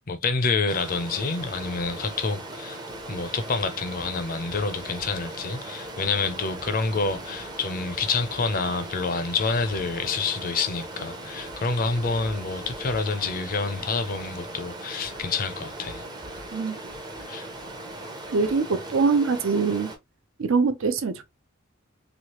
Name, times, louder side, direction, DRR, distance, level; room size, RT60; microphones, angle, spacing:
voice 1, 0.1-2.8 3.1-16.0 17.3-17.5, left 4 dB, 40° left, 0.5 m, -28 dB
Stream, 0.7-20.0, right 1 dB, 20° right, 0.6 m, -38 dB
voice 2, 18.3-19.9 20.4-21.2, right 4 dB, 65° right, 0.5 m, -23 dB
3.1 x 2.4 x 2.9 m
head